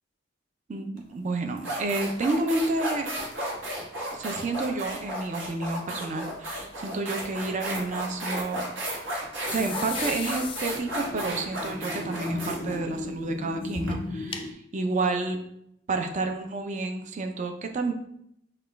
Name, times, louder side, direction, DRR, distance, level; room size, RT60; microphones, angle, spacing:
voice 1, 0.7-3.1 4.1-8.7 9.5-15.4 15.9-17.9, right 3 dB, 40° right, 5 dB, 0.4 m, -30 dB
sound 1, 1.0-1.1 1.6-13.9, equal, 75° right, 1.0 m, -34 dB
sound 2, 9.5-14.5, left 3 dB, 30° left, 0.3 m, -35 dB
5.8 x 2.2 x 3.3 m, 0.74 s
head